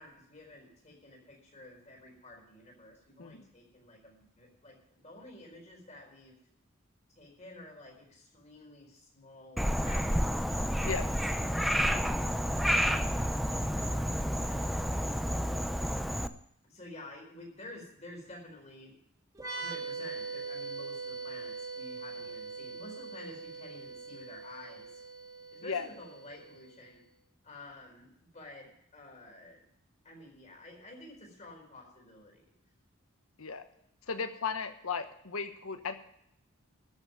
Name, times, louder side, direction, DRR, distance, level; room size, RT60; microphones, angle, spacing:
voice 1, 0.0-6.4 7.2-10.6 11.3-11.6 12.6-12.8 13.3-15.5 16.6-19.0 19.5-25.0 25.5-27.0 27.4-29.6 30.0-32.5, left 1 dB, 35° left, 0 dB, 4.4 m, -51 dB
Frog, 9.6-16.3, equal, ahead, 0.5 m, -30 dB
sound 1, 19.3-26.9, right 4 dB, 15° right, 2.7 m, -42 dB
voice 2, 34.1-36.1, left 5 dB, 85° left, 8 dB, 1.2 m, -36 dB
14.0 x 6.4 x 9.1 m, 0.74 s
head